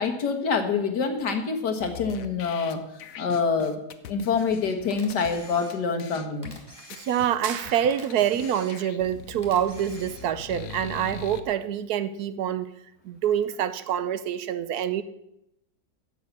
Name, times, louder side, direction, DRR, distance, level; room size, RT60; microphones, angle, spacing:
voice 1, 0.0-2.8 3.2-3.8 4.1-6.6, left 5 dB, 85° left, 5 dB, 2.1 m, -26 dB
sound 1, 1.8-5.3 5.7-5.8 6.0-6.5 6.9-7.7 8.1-8.2 8.4-11.4, left 8 dB, 60° left, 1.1 m, -42 dB
Camera, 4.9-6.0 6.4-7.6 7.9-9.0 9.4-10.5, left 1 dB, 15° left, 2.0 m, -48 dB
voice 2, 6.9-12.7 13.0-15.0, right 10 dB, 70° right, 13 dB, 1.2 m, -26 dB
sound 2, 7.4-8.5, right 7 dB, 50° right, 0.9 m, -38 dB
10.5 x 7.5 x 8.3 m, 0.83 s
omnidirectional pair, 1.7 m